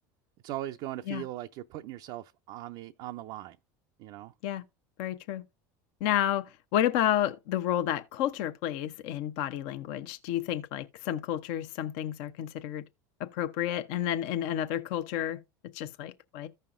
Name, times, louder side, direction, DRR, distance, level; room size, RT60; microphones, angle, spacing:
voice 1, 0.4-3.6 4.0-4.3, right 14 dB, 60° right, 0.4 m, -39 dB
voice 2, 5.0-5.4 6.0-12.8 13.2-15.4 15.7-16.5, left 11 dB, 65° left, 0.7 m, -31 dB
14.5 x 5.6 x 2.4 m
hypercardioid pair, 90°, 10 cm